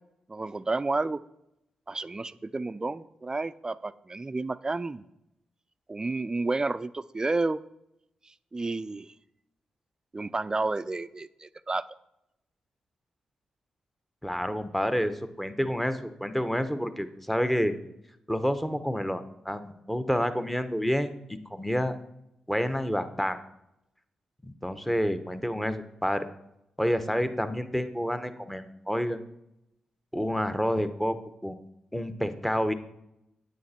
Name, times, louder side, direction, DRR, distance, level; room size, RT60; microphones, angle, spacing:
voice 1, 0.3-1.2 1.9-5.0 5.9-7.6 8.5-9.1 10.1-11.8, right 3 dB, 30° right, 15 dB, 0.5 m, -31 dB
voice 2, 14.2-17.7 18.3-22.0 22.5-23.4 24.4-26.3 26.8-29.2 30.1-31.2 31.4-31.5 31.9-32.7, equal, 5° left, 10 dB, 1.1 m, -29 dB
9.3 x 8.9 x 4.4 m, 0.82 s
supercardioid pair, 45°, 2 cm